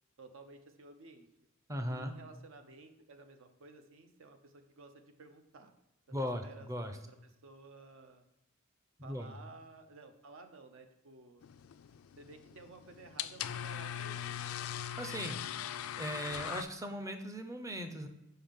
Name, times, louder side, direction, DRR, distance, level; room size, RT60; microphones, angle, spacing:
voice 1, 0.2-1.3 1.9-5.7 6.1-8.2 9.0-11.4 12.2-14.5, right 3 dB, 65° right, 8 dB, 0.6 m, -55 dB
voice 2, 1.7-2.1 6.1-7.0 9.0-9.3 15.0-15.4 16.0-18.1, equal, 15° right, 7 dB, 0.5 m, -38 dB
sound 1, 11.4-16.6, left 10 dB, 70° left, 0.3 m, -41 dB
5.6 x 5.3 x 3.5 m, 0.93 s
head